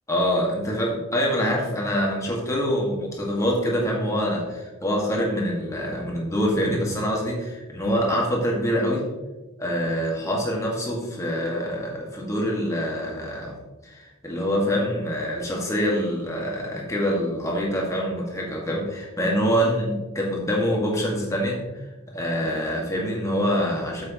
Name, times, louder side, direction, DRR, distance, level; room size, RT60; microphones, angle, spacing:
voice 1, 0.1-9.0 9.6-13.6 13.8-21.8 22.1-24.0, equal, 15° left, -2 dB, 1.9 m, -25 dB
9.2 x 7.9 x 3.1 m, 1.1 s
head